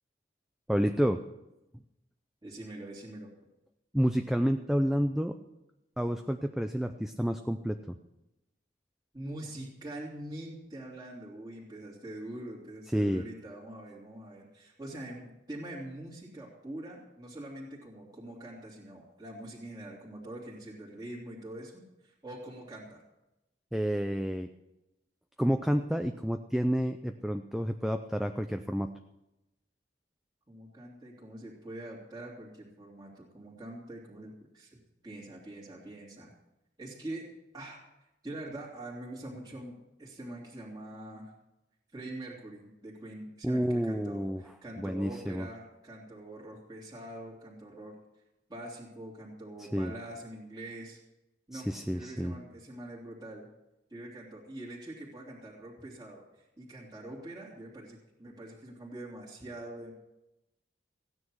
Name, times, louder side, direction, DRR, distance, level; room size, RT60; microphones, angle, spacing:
voice 1, 0.7-1.2 3.9-5.4 6.0-7.9 12.9-13.2 23.7-24.5 25.4-28.9 43.4-44.4 44.8-45.5 49.7-49.9 51.5-52.3, equal, ahead, 6 dB, 0.4 m, -29 dB
voice 2, 2.4-3.3 9.1-23.0 30.5-36.3 36.8-37.8 38.2-39.7 40.0-41.3 41.9-48.0 48.5-51.0 51.5-53.5 53.9-59.9, right 1 dB, 20° right, -5 dB, 3.0 m, -44 dB
16.0 x 9.7 x 6.3 m, 0.92 s
head